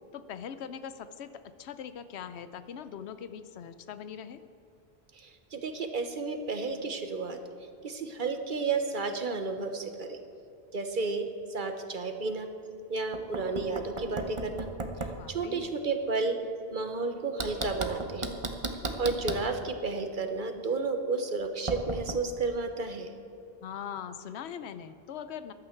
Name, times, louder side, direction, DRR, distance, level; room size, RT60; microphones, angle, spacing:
voice 1, 0.1-1.3 1.6-4.4 15.1-15.7 23.6-25.5, left 8 dB, 85° left, 12 dB, 0.9 m, -41 dB
voice 2, 5.1-7.4 7.8-10.2 10.7-12.5 12.9-14.7 15.3-16.4 16.7-18.3 18.9-23.1, right 3 dB, 50° right, 7 dB, 1.1 m, -32 dB
Knock, 13.1-15.2 17.4-19.5 21.7-22.2, right 2 dB, 30° right, 0.9 m, -35 dB
14.5 x 11.5 x 4.5 m, 2.7 s
omnidirectional pair, 1.1 m